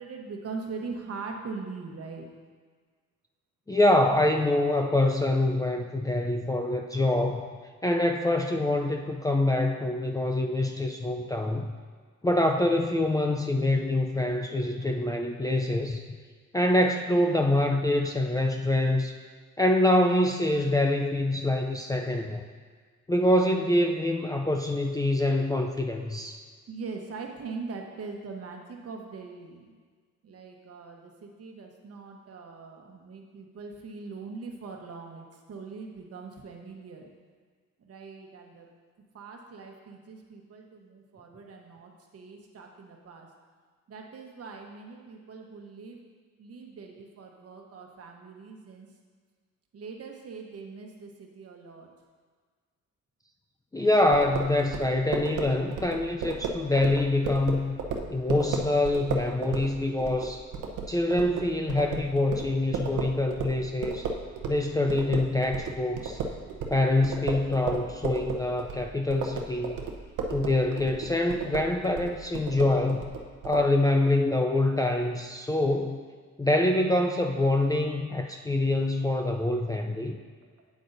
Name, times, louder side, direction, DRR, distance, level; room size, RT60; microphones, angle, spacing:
voice 1, 0.0-2.3 26.7-29.8 30.2-37.1 37.8-38.7 39.1-43.3 43.9-46.1 46.4-48.9 49.7-51.9 76.7-78.5 80.4-80.5, right 4 dB, 50° right, 2 dB, 1.2 m, -42 dB
voice 2, 3.7-7.5 7.8-11.7 12.2-16.0 16.5-19.1 19.6-22.4 23.1-26.4 53.7-57.7 58.1-60.4 60.9-64.1 64.5-66.2 66.7-69.8 70.3-73.1 73.4-76.0 76.4-80.2, left 1 dB, 10° left, 2 dB, 0.4 m, -25 dB
sound 1, 54.1-64.6 64.9-73.6, right 4 dB, 85° right, 0.8 m, -34 dB
8.4 x 7.9 x 2.6 m, 1.6 s
cardioid pair, 90°, 30 cm